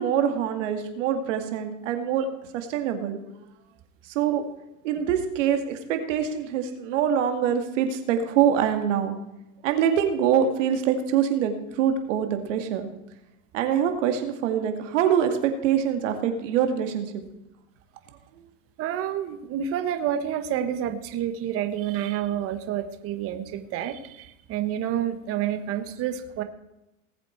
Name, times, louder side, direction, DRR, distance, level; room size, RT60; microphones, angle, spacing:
voice 1, 0.0-2.3 2.5-3.2 4.0-4.4 4.8-9.2 9.6-12.9 13.5-17.2 18.4-18.5, right 8 dB, 65° right, 6 dB, 2.3 m, -24 dB
voice 2, 18.8-26.4, right 10 dB, 35° right, 9 dB, 1.2 m, -29 dB
19.5 x 7.7 x 4.6 m, 0.91 s
supercardioid pair, 135°, 39 cm